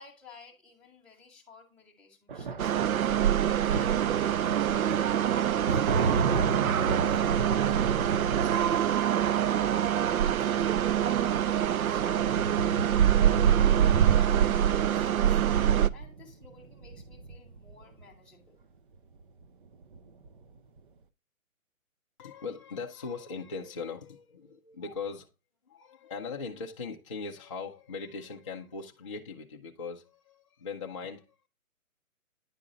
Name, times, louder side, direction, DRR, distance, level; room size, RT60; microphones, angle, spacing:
voice 1, 0.0-2.9 3.6-4.1 4.4-9.1 9.7-15.4 15.9-18.6, left 4 dB, 5° left, 1.2 m, -54 dB
sound 1, 2.3-18.0 19.2-19.4 19.7-20.4, right 4 dB, 40° right, 0.5 m, -34 dB
sound 2, 2.6-15.9, right 10 dB, 85° right, 0.6 m, -25 dB
voice 2, 22.2-25.3 25.7-31.2, left 4 dB, 25° left, 0.4 m, -39 dB
9.9 x 3.6 x 3.7 m
hypercardioid pair, 145°, 41 cm